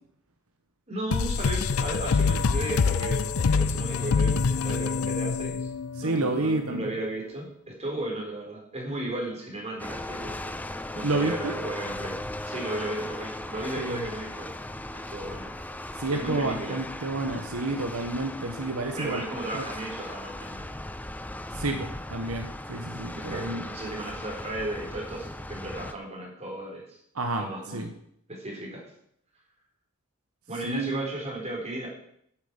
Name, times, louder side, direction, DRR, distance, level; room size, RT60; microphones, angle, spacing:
voice 1, 0.9-5.7 6.0-10.3 10.9-12.2 12.5-14.5 14.9-15.5 16.1-16.8 19.0-20.6 23.1-27.0 27.4-27.9 28.3-28.8 30.5-31.9, right 1 dB, 30° right, -2 dB, 4.1 m, -35 dB
sound 1, 1.1-6.4, left 5 dB, 70° left, 0.5 m, -25 dB
voice 2, 6.0-6.9 11.0-11.5 13.8-14.0 15.9-19.2 19.5-19.6 21.5-23.6 27.1-27.9 30.6-31.1, right 2 dB, 80° right, 5 dB, 1.2 m, -30 dB
sound 2, 9.8-25.9, left 1 dB, 10° left, 0.6 m, -38 dB
8.7 x 8.1 x 8.1 m, 0.71 s
head